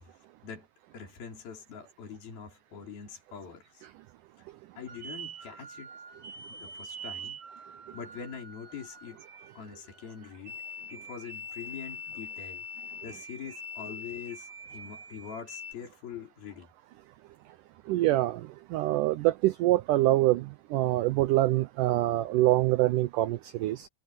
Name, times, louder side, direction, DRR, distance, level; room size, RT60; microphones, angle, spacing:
voice 1, 0.1-0.7 0.9-3.9 4.8-5.9 6.5-7.4 7.7-9.2 9.5-10.6 10.9-12.6 13.0-16.7, left 7 dB, 70° left, 6.5 m, -44 dB
sound 1, 4.9-15.7, left 1 dB, 50° right, 4.5 m, -44 dB
voice 2, 17.9-23.9, right 16 dB, 85° right, 1.8 m, -25 dB
omnidirectional pair, 4.5 m